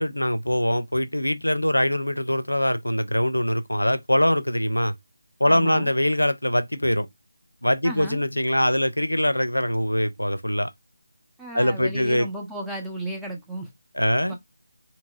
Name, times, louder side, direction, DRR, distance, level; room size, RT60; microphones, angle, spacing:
voice 1, 0.0-4.9 5.4-7.1 7.6-10.7 11.5-12.3 13.9-14.4, equal, 80° left, 0.4 m, -23 dB
voice 2, 5.5-5.9 7.8-8.2 11.4-13.7 14.2-14.4, right 2 dB, ahead, 0.5 m, -34 dB
2.8 x 2.7 x 2.2 m
figure-of-eight pair, 160°, 0 cm